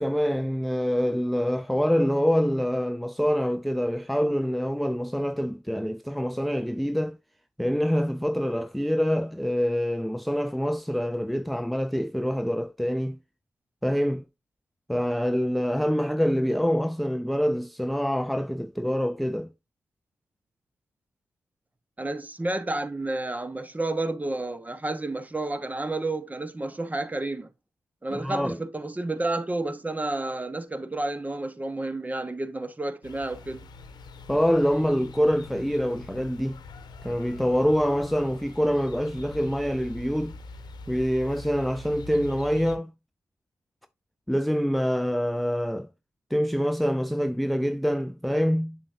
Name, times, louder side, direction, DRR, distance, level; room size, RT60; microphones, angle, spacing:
voice 1, 0.0-7.2 7.6-13.2 13.8-14.2 14.9-19.5 28.1-28.6 34.3-36.6 37.0-40.4 40.9-42.9 44.3-45.9 46.3-48.8, equal, ahead, 0.4 m, -25 dB
voice 2, 22.0-27.5 28.0-33.7, right 2 dB, 20° right, 1.0 m, -30 dB
sound 1, 33.0-42.8, left 2 dB, 70° left, 1.0 m, -44 dB
7.2 x 6.5 x 2.6 m
supercardioid pair, 45°, 8 cm